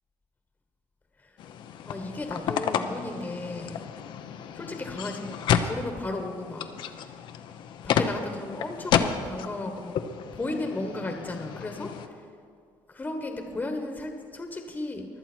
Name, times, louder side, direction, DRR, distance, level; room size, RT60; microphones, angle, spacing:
sound 1, 1.4-12.1, left 8 dB, 65° left, 0.8 m, -31 dB
voice 1, 1.8-3.8 4.5-6.6 7.8-9.9 10.3-11.9 12.9-15.1, left 2 dB, 20° left, 4 dB, 1.4 m, -34 dB
23.5 x 7.9 x 4.5 m, 2.2 s
cardioid pair, 115°, 9 cm